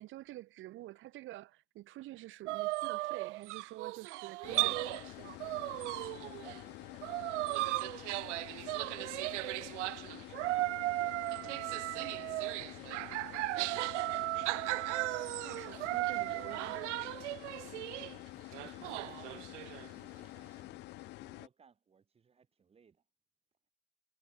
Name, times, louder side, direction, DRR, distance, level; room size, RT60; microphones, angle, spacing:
voice 1, 0.0-5.4 15.4-17.0, right 16 dB, 35° right, 1.4 m, -48 dB
sound 1, 2.5-5.1 5.4-6.6 6.9-18.2 18.5-19.9, right 20 dB, 90° right, 0.6 m, -36 dB
sound 2, 4.4-21.5, left 19 dB, 30° left, 0.5 m, -49 dB
voice 2, 5.6-10.6 10.9-14.1 17.6-23.0, right 6 dB, 15° right, 4.1 m, -64 dB
supercardioid pair, 150°, 35 cm